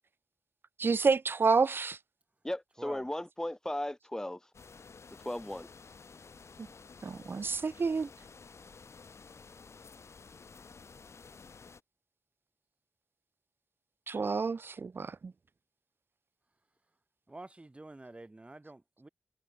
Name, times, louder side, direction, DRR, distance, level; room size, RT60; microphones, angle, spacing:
voice 1, 0.8-2.0 7.0-8.1 14.1-15.3, right 4 dB, 40° right, 0.4 m, -29 dB
voice 2, 2.4-4.4 5.2-5.7, left 1 dB, 10° left, 1.4 m, -36 dB
sound 1, 4.5-11.8, left 5 dB, 55° left, 4.4 m, -53 dB
voice 3, 17.3-19.1, right 2 dB, 20° right, 1.5 m, -48 dB
wide cardioid pair, 110°, 6 cm